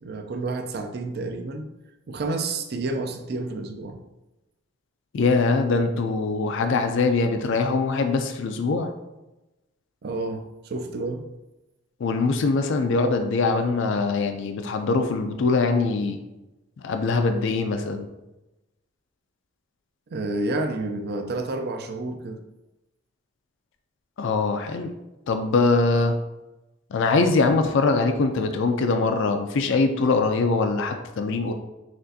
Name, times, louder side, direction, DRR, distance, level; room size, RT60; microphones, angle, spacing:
voice 1, 0.0-1.7 2.1-4.0 10.0-11.3 20.1-22.4, right 2 dB, 50° right, 6 dB, 0.4 m, -30 dB
voice 2, 5.1-8.9 12.0-16.2 16.8-18.1 24.2-24.9 25.3-26.2 26.9-31.5, left 3 dB, 60° left, 6 dB, 0.4 m, -22 dB
6.0 x 2.5 x 2.6 m, 1.0 s
head